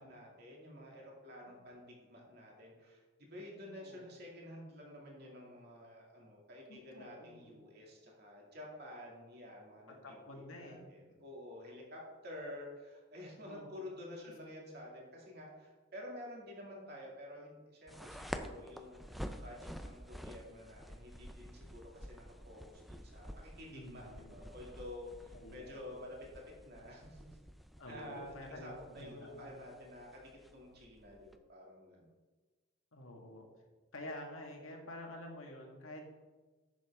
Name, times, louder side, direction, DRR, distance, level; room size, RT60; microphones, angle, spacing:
voice 1, 0.0-26.2 26.7-27.4 27.9-32.1, left 1 dB, 50° right, -2 dB, 2.4 m, -50 dB
voice 2, 3.6-4.1 6.7-7.6 10.0-10.9 13.4-13.9 23.7-24.3 25.3-25.8 27.8-29.6 32.9-33.5 33.9-36.0, left 1 dB, 90° left, 1 dB, 1.8 m, -49 dB
sound 1, 17.9-31.4, equal, ahead, 0.4 m, -49 dB
10.5 x 7.2 x 3.6 m, 1.3 s
head